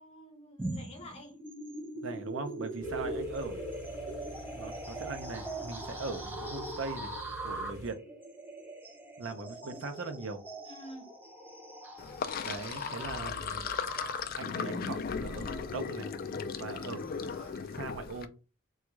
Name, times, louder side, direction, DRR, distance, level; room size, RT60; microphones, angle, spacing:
voice 1, 0.0-1.4 2.9-3.2 9.6-9.8 10.6-11.1, equal, 30° left, 0.9 m, -49 dB
sound 1, 0.6-17.5, right 1 dB, 10° right, 0.6 m, -42 dB
voice 2, 2.0-3.7 4.5-7.2 7.4-8.0 9.2-10.4 12.4-13.7 14.3-16.1 16.6-18.3, right 3 dB, 70° right, 0.6 m, -40 dB
Car / Idling, 2.8-7.9, equal, 85° left, 0.6 m, -48 dB
Sink (filling or washing), 12.0-18.2, left 6 dB, 45° left, 0.3 m, -36 dB
3.5 x 2.3 x 3.0 m
head